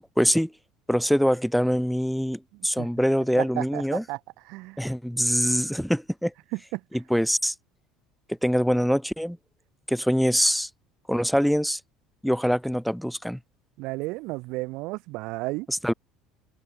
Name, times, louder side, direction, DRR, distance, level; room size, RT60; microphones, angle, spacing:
voice 1, 0.2-0.5 0.9-4.0 4.8-6.3 6.9-7.5 8.4-9.4 9.9-10.7 11.1-11.8 12.2-13.4 15.7-15.9, equal, ahead, 0.5 m, -24 dB
voice 2, 3.4-3.8 4.1-4.2 4.5-4.8 6.5-6.8 13.8-15.7, right 23 dB, 65° right, 1.7 m, -32 dB
open air
cardioid pair, 155°, 0 cm